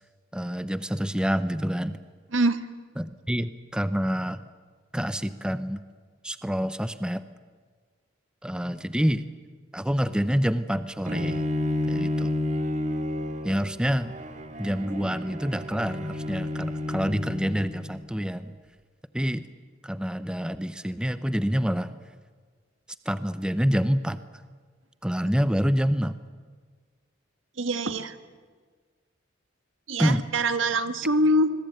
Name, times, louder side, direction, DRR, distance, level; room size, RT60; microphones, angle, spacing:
voice 1, 0.3-2.0 3.0-4.4 4.9-5.8 6.2-7.2 8.4-9.2 9.7-11.4 11.9-12.3 13.4-14.1 14.6-18.6 19.1-19.5 19.8-21.9 23.1-24.2 25.0-26.2 30.0-30.2, equal, 5° right, 12 dB, 0.7 m, -27 dB
Bowed string instrument, 11.1-18.1, left 1 dB, 40° right, 2.0 m, -31 dB
voice 2, 27.6-28.1 29.9-31.5, right 1 dB, 85° right, 10 dB, 1.5 m, -24 dB
26.0 x 21.5 x 9.1 m, 1.5 s
head